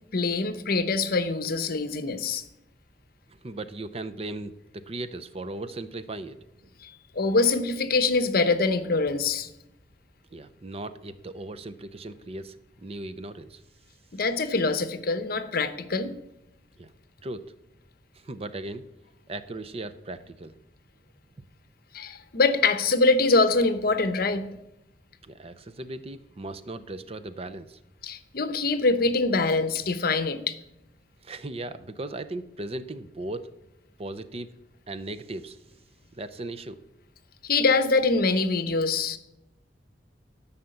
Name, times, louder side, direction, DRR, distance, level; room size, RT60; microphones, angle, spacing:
voice 1, 0.1-2.4 6.8-9.5 14.1-16.1 21.9-24.6 28.0-30.6 37.4-39.2, left 3 dB, 55° left, 0.9 m, -24 dB
voice 2, 3.4-6.4 6.6-6.7 10.3-13.6 16.8-16.9 17.2-17.5 18.2-18.8 19.3-20.5 25.2-27.8 31.2-33.5 34.0-34.5 34.9-35.6 36.1-36.8, right 2 dB, 35° right, 0.6 m, -37 dB
13.0 x 5.8 x 7.8 m
head